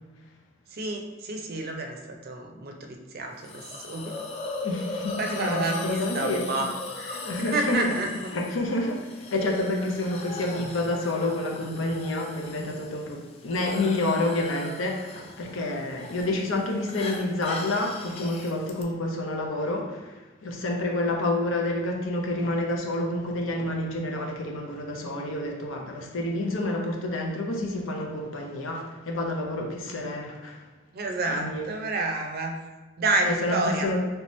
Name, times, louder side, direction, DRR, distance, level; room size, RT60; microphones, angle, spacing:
voice 1, 0.7-4.3 5.2-8.3 11.6-11.7 30.9-32.6 33.0-33.9, right 2 dB, 50° right, 3 dB, 0.4 m, -30 dB
Hiss, 3.4-18.8, left 3 dB, 30° left, 0.3 m, -39 dB
voice 2, 4.6-6.4 7.1-7.8 8.3-20.2 20.4-30.6 31.3-31.6 33.3-34.0, left 2 dB, 85° left, 0 dB, 0.7 m, -29 dB
3.3 x 2.9 x 3.1 m, 1.2 s
head